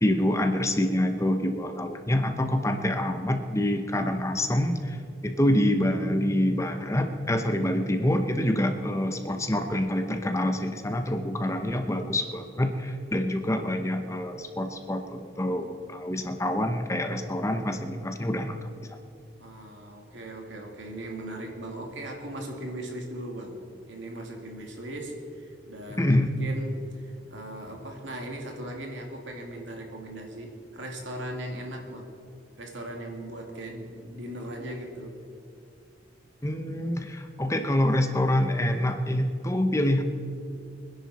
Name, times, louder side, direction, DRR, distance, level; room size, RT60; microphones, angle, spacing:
voice 1, 0.0-5.0 5.2-18.6 18.9-19.0 26.0-26.3 36.4-40.0, left 1 dB, 15° left, 6 dB, 0.8 m, -26 dB
voice 2, 19.4-27.0 27.3-32.1 32.6-35.2, right 1 dB, 75° right, 1 dB, 2.5 m, -38 dB
24.5 x 10.5 x 4.2 m, 2.5 s
head